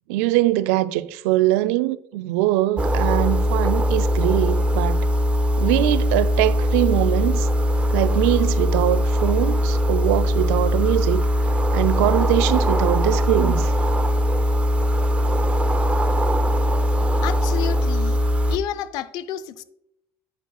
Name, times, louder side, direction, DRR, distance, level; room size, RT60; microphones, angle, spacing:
voice 1, 0.1-5.1 5.6-7.5 7.9-11.2 11.7-13.7, right 16 dB, 85° right, 0.4 m, -22 dB
sound 1, 2.8-18.6, equal, 15° right, 0.7 m, -20 dB
voice 2, 17.2-18.2 18.5-19.6, left 11 dB, 70° left, 0.5 m, -30 dB
9.0 x 6.5 x 2.3 m
supercardioid pair, 90°, 7 cm